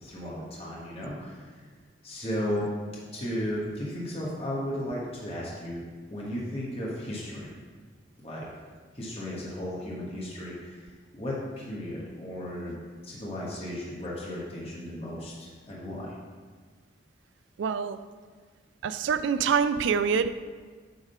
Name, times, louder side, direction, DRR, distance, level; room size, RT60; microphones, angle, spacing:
voice 1, 0.0-1.6 2.0-2.7 3.1-5.8 6.1-7.5 8.2-8.5 8.9-10.8 11.1-12.8 13.0-16.1, equal, 30° left, -5 dB, 1.2 m, -35 dB
voice 2, 17.6-18.0 18.8-20.4, right 6 dB, 80° right, 12 dB, 0.3 m, -25 dB
7.9 x 3.6 x 5.5 m, 1.5 s
head